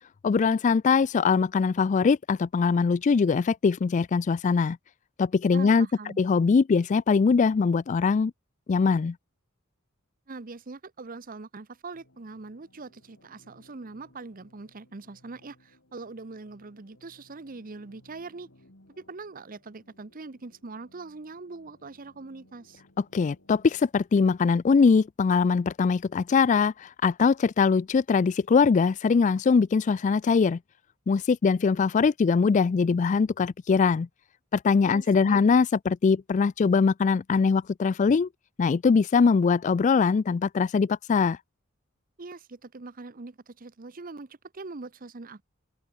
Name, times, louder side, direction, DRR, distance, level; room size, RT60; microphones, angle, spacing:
voice 1, 0.2-4.8 5.2-5.9 6.2-8.3 8.7-9.2 23.1-30.6 31.1-34.1 34.5-38.3 38.6-41.4, left 5 dB, 35° left, 0.3 m, -22 dB
voice 2, 5.5-6.2 10.3-18.5 19.0-22.8 34.8-35.4 42.2-45.4, right 3 dB, 40° right, 0.8 m, -42 dB
sound 1, 11.9-23.9, left 1 dB, 65° left, 4.1 m, -61 dB
head